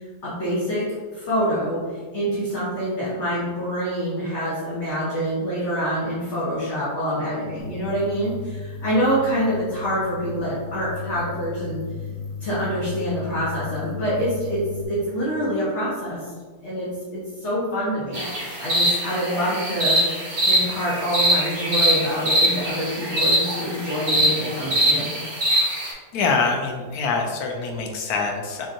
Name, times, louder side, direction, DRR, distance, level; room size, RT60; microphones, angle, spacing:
voice 1, 0.2-0.8 1.1-11.8 12.4-16.3 16.6-25.1, equal, 50° left, -9 dB, 1.3 m, -26 dB
sound 1, 7.6-14.8, left 5 dB, 55° right, 1.2 m, -34 dB
sound 2, 18.1-25.9, right 1 dB, 30° right, 1.2 m, -22 dB
voice 2, 26.1-28.7, left 4 dB, 80° left, 2 dB, 1.1 m, -24 dB
6.2 x 2.8 x 2.6 m, 1.5 s
omnidirectional pair, 1.6 m